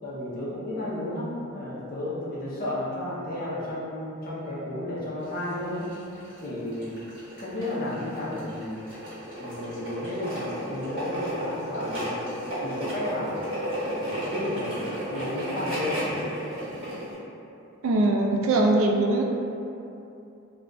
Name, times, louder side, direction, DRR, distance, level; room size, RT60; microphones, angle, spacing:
voice 1, 0.0-5.9 6.4-6.9 7.4-8.8 9.4-13.5 13.8-16.2, left 1 dB, 40° left, -7 dB, 0.6 m, -33 dB
sound 1, 5.2-17.1, equal, 25° right, 1.1 m, -33 dB
voice 2, 17.8-19.2, right 2 dB, 60° right, 1 dB, 0.3 m, -21 dB
2.3 x 2.2 x 3.8 m, 2.7 s
head